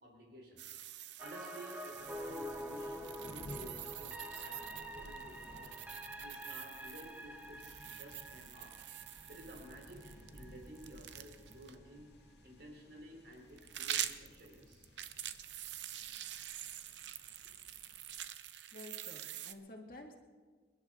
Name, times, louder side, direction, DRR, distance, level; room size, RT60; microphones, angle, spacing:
voice 1, 0.0-5.8 6.1-8.8 9.3-12.1 12.4-14.9, right 1 dB, 70° right, 0 dB, 3.7 m, -54 dB
sound 1, 0.6-11.7 13.3-19.5, right 11 dB, 85° right, 0.7 m, -46 dB
sound 2, 1.2-11.2 11.6-11.7, equal, 10° right, 1.0 m, -47 dB
sound 3, 2.0-18.3, left 1 dB, 65° left, 1.9 m, -57 dB
voice 2, 18.7-20.2, left 1 dB, 50° left, 1 dB, 2.1 m, -51 dB
27.0 x 11.5 x 3.8 m, 1.5 s
head